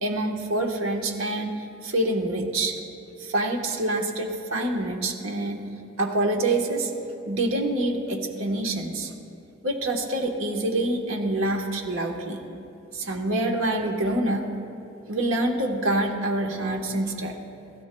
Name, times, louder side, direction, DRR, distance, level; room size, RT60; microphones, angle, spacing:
voice 1, 0.0-2.8 3.2-5.6 6.0-6.9 7.2-9.1 9.6-12.4 12.9-14.5 15.1-17.4, right 1 dB, 75° right, 2 dB, 1.2 m, -26 dB
20.0 x 13.0 x 2.2 m, 2.8 s
head